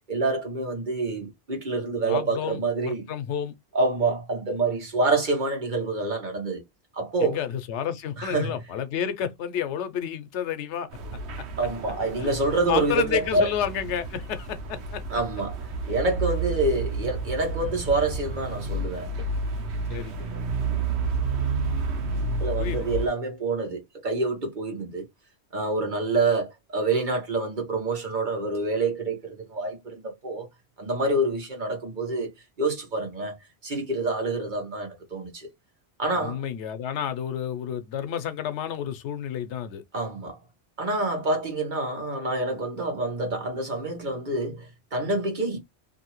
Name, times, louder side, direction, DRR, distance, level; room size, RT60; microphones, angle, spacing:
voice 1, 0.1-3.1 3.7-6.6 6.9-7.4 8.2-8.6 11.6-13.5 15.1-19.1 22.4-25.0 25.5-30.5 30.8-32.3 32.6-33.3 33.6-35.5 36.0-36.4 39.9-40.4 40.8-45.6, right 2 dB, 45° right, 1.2 m, -27 dB
voice 2, 2.0-3.5 7.2-10.9 12.2-12.3 12.7-15.0 19.9-20.5 22.6-22.9 36.2-39.8, left 9 dB, 90° left, 0.9 m, -30 dB
sound 1, 10.9-23.1, right 3 dB, 80° right, 1.0 m, -30 dB
2.7 x 2.6 x 2.9 m
omnidirectional pair, 1.1 m